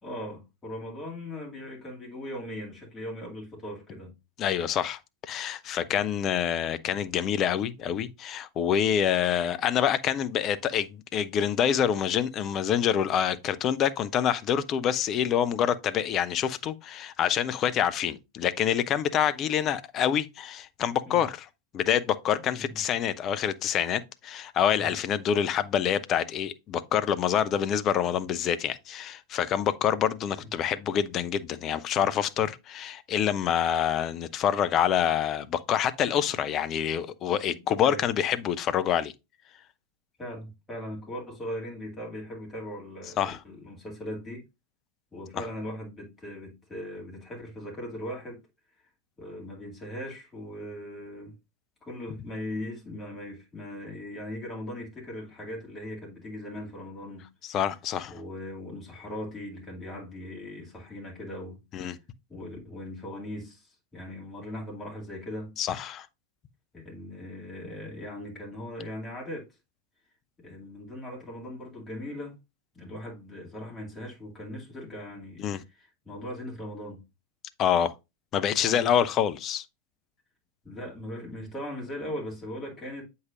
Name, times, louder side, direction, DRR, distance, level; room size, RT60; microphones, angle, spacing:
voice 1, 0.0-4.2 5.8-5.9 21.1-21.2 22.3-22.8 24.7-25.0 30.4-30.5 37.5-38.1 40.2-44.4 45.1-48.4 49.2-51.4 51.8-57.3 58.1-61.6 62.3-65.6 66.7-69.5 70.4-72.4 72.7-77.0 78.6-78.9 80.6-83.1, left 1 dB, 15° left, 2.4 m, -39 dB
voice 2, 4.4-5.0 5.3-21.5 21.7-39.1 43.2-43.4 57.4-58.1 61.7-62.0 65.6-66.1 75.4-75.6 77.6-77.9 78.3-79.6, left 9 dB, 30° left, 0.5 m, -26 dB
7.8 x 5.5 x 2.5 m
figure-of-eight pair, 90°, 0 cm